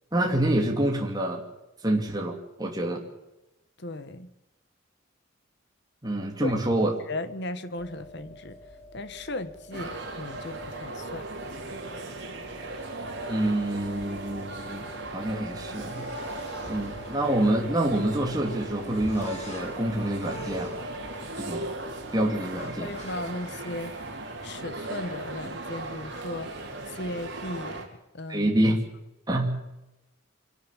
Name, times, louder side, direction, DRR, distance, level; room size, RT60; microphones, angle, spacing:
voice 1, 0.1-1.4 1.8-3.0 6.0-6.9 13.3-16.1 16.7-20.8 21.4-21.7 22.1-22.9 28.3-28.8 29.3-29.6, right 1 dB, 20° right, 1 dB, 2.4 m, -27 dB
voice 2, 3.8-4.3 6.4-6.5 7.1-8.6 8.9-11.2 22.6-24.0 24.4-26.6 26.9-27.9 28.1-28.5, left 2 dB, 55° left, 11 dB, 1.4 m, -36 dB
sound 1, 7.8-23.6, equal, 35° left, 5.7 m, -45 dB
sound 2, 9.7-27.9, right 2 dB, 55° right, 4.4 m, -38 dB
25.0 x 12.0 x 9.9 m, 0.93 s
head